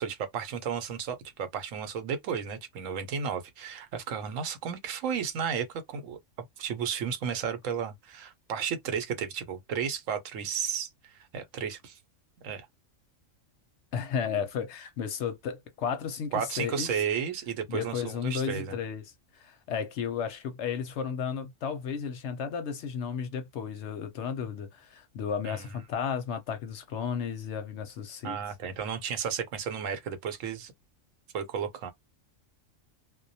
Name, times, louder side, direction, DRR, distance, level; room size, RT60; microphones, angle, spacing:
voice 1, 0.0-6.2 6.6-12.0 12.4-12.7 16.3-18.8 25.4-25.8 28.2-30.7 31.3-31.9, right 7 dB, 75° right, 1.0 m, -33 dB
voice 2, 13.9-17.0 17.7-28.4, left 7 dB, 65° left, 0.8 m, -33 dB
2.2 x 2.2 x 2.6 m
omnidirectional pair, 1.4 m